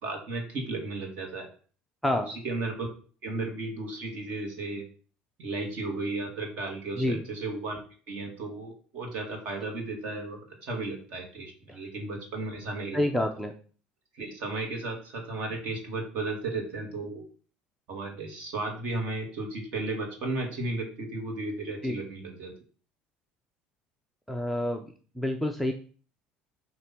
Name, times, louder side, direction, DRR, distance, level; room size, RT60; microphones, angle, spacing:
voice 1, 0.0-1.5 2.1-2.9 3.2-4.8 5.4-7.8 8.1-13.0 14.1-17.2 17.9-22.5, right 2 dB, 50° right, 2 dB, 2.2 m, -34 dB
voice 2, 12.9-13.5 21.8-22.0 24.3-24.9 25.2-25.7, left 1 dB, ahead, 4 dB, 0.5 m, -27 dB
7.7 x 3.0 x 5.9 m, 0.41 s
cardioid pair, 180°, 3 cm